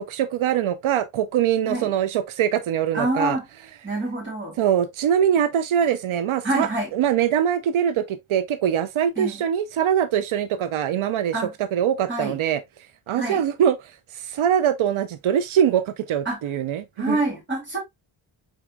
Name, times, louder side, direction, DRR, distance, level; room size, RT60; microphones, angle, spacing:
voice 1, 0.0-3.4 4.6-12.6 13.1-17.2, right 9 dB, 90° right, 0.6 m, -23 dB
voice 2, 2.9-3.4 3.8-4.5 6.4-6.9 9.2-9.4 11.3-11.5 12.1-12.4 13.1-13.4 16.3-16.4 17.0-17.8, right 2 dB, 25° right, 2.6 m, -26 dB
4.7 x 4.0 x 2.2 m
wide cardioid pair, 165°, 47 cm